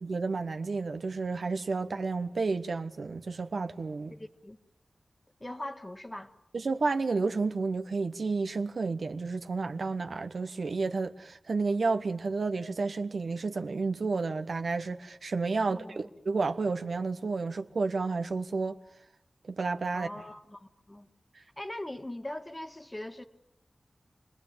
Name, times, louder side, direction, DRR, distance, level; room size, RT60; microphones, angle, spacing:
voice 1, 0.0-4.1 6.5-18.7 19.5-20.1, right 4 dB, 80° right, 1.1 m, -31 dB
voice 2, 4.1-4.6 5.4-6.3 15.6-16.1 19.9-21.1 21.6-23.3, left 1 dB, 25° left, 1.8 m, -41 dB
28.0 x 20.0 x 8.9 m
wide cardioid pair, 60°, 0 cm